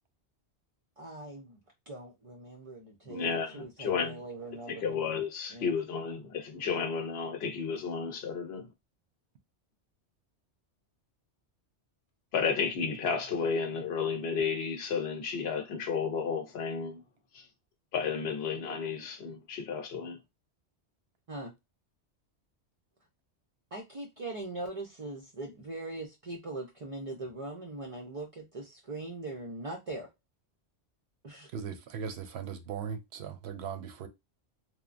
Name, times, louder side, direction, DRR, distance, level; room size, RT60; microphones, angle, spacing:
voice 1, 1.0-1.6 1.9-5.2 5.5-5.8 21.3-21.5 23.7-30.1 31.2-31.5, right 2 dB, 45° right, 0.4 m, -41 dB
voice 2, 3.0-4.2 4.7-8.7 12.3-17.0 17.3-17.4 17.9-20.2, left 6 dB, 65° left, 0.9 m, -32 dB
voice 3, 31.5-34.1, right 7 dB, 70° right, 0.8 m, -38 dB
3.0 x 2.1 x 2.4 m
omnidirectional pair, 1.2 m